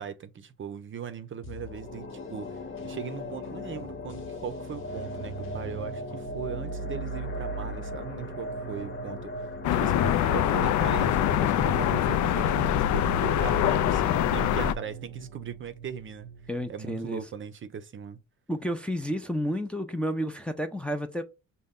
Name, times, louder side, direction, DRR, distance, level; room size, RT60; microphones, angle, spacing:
voice 1, 0.0-2.6 2.8-16.3 16.7-18.2, right 7 dB, 40° right, 0.6 m, -39 dB
sound 1, 1.4-14.5 14.8-14.9, left 2 dB, 40° left, 1.0 m, -39 dB
sound 2, 4.7-16.7, right 5 dB, 90° right, 0.6 m, -40 dB
sound 3, 9.6-14.7, left 11 dB, 70° left, 0.4 m, -24 dB
voice 2, 16.5-17.2 18.5-21.2, equal, 5° left, 0.5 m, -31 dB
5.3 x 2.2 x 3.6 m
cardioid pair, 90°, 30 cm